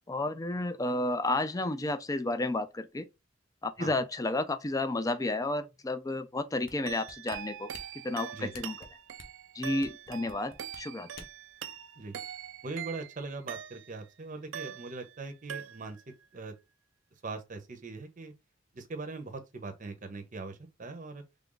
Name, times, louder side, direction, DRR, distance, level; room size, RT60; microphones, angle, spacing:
voice 1, 0.1-3.1 3.6-7.7 8.0-8.8 9.5-11.2, left 2 dB, 20° left, 0.4 m, -32 dB
Chest Drum, 6.7-11.5 12.0-12.1, left 3 dB, 50° left, 0.8 m, -51 dB
sound 1, 6.9-14.1 14.5-15.2 15.5-16.1, right 9 dB, 80° right, 0.4 m, -43 dB
voice 2, 12.6-16.0 16.3-16.5 17.2-18.3 18.7-21.2, right 3 dB, 45° right, 0.7 m, -41 dB
3.4 x 2.5 x 3.8 m
head